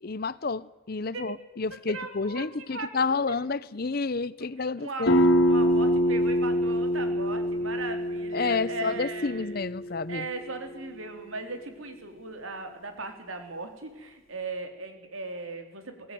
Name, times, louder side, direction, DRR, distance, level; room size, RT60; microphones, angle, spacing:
voice 1, 0.0-5.2 8.3-10.3, left 4 dB, 45° left, 0.6 m, -30 dB
voice 2, 1.9-2.9 3.3-3.4 4.8-5.1 5.5-9.6 10.1-16.1, right 3 dB, 75° right, 3.6 m, -38 dB
sound 1, 5.1-10.5, equal, 65° left, 3.4 m, -25 dB
21.5 x 17.0 x 9.3 m
head